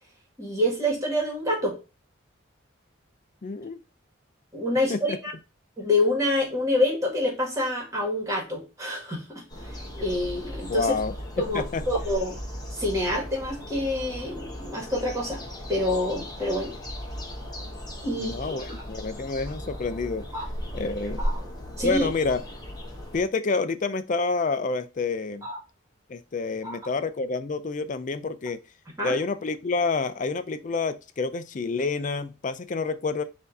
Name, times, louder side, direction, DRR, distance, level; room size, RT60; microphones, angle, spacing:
voice 1, 0.4-1.8 4.5-5.3 5.8-10.9 11.4-12.4 12.7-15.4 15.7-16.8 18.0-18.6 20.3-20.5 21.2-21.4 21.8-22.1 25.4-25.6 26.6-26.8 29.0-29.2, left 1 dB, 15° right, 1.8 m, -27 dB
voice 2, 3.4-3.8 4.9-5.2 10.7-11.9 18.1-20.3 20.7-21.3 21.8-22.4 23.1-25.4 26.1-28.6 29.0-33.2, left 4 dB, 40° left, 0.4 m, -28 dB
sound 1, 9.5-23.2, equal, 20° left, 1.1 m, -36 dB
4.3 x 2.7 x 4.0 m
head